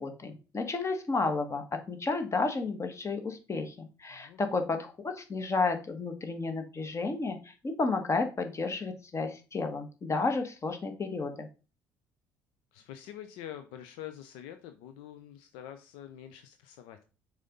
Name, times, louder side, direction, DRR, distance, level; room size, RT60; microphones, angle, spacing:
voice 1, 0.0-11.5, left 3 dB, 30° left, 6 dB, 1.6 m, -32 dB
voice 2, 4.1-4.6 12.7-17.0, left 11 dB, 70° left, 8 dB, 0.6 m, -46 dB
6.4 x 5.0 x 3.9 m, 0.32 s
hypercardioid pair, 55°, 10 cm